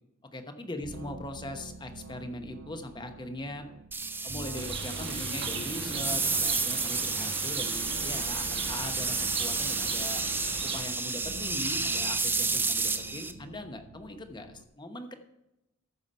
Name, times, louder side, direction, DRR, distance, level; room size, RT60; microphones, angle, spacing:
voice 1, 0.3-3.7 4.2-10.2 10.7-15.1, left 1 dB, 20° left, 7 dB, 1.0 m, -40 dB
sound 1, 0.8-14.6, right 2 dB, 85° right, 0.8 m, -46 dB
sound 2, 3.9-13.3, right 4 dB, 10° right, 0.6 m, -31 dB
Bird, 4.6-10.8, right 5 dB, 55° right, 1.6 m, -38 dB
14.0 x 5.8 x 5.4 m, 0.91 s
head